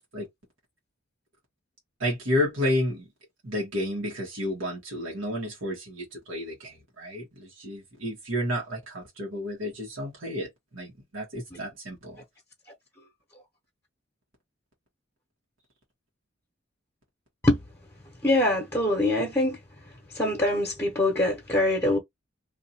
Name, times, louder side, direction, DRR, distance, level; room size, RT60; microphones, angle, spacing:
voice 1, 2.0-3.1 3.4-12.2, left 1 dB, 80° right, 1.3 m, -31 dB
voice 2, 18.2-19.6 20.1-22.0, left 1 dB, 10° left, 1.0 m, -23 dB
2.7 x 2.6 x 4.2 m
head